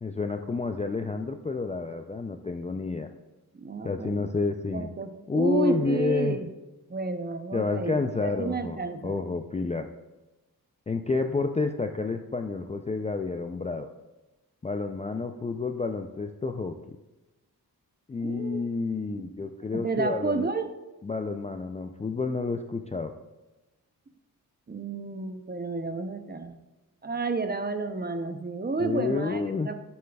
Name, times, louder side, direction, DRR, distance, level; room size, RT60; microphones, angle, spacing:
voice 1, 0.0-3.1 3.8-4.9 5.3-6.4 7.5-9.9 10.9-13.9 14.6-16.7 18.1-20.5 21.0-23.1 28.8-29.7, left 3 dB, 20° left, 6 dB, 0.3 m, -29 dB
voice 2, 3.6-4.2 4.7-6.5 6.9-7.9 8.2-9.1 18.2-18.6 19.8-20.7 24.7-26.6 27.0-29.7, right 3 dB, 25° right, 8 dB, 0.6 m, -31 dB
8.6 x 7.4 x 2.3 m, 1.1 s
cardioid pair, 75°, 38 cm